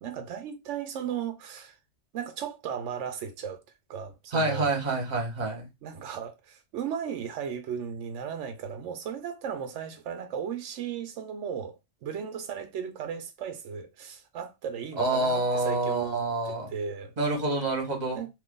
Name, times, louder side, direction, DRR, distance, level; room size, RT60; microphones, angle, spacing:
voice 1, 0.0-1.8 2.1-3.6 3.9-4.7 5.8-11.8 12.0-17.1 18.1-18.3, right 7 dB, 85° right, 0.9 m, -36 dB
voice 2, 4.3-5.7 15.0-16.7 17.2-18.2, right 2 dB, 40° right, 1.1 m, -27 dB
2.7 x 2.5 x 3.6 m
omnidirectional pair, 1.2 m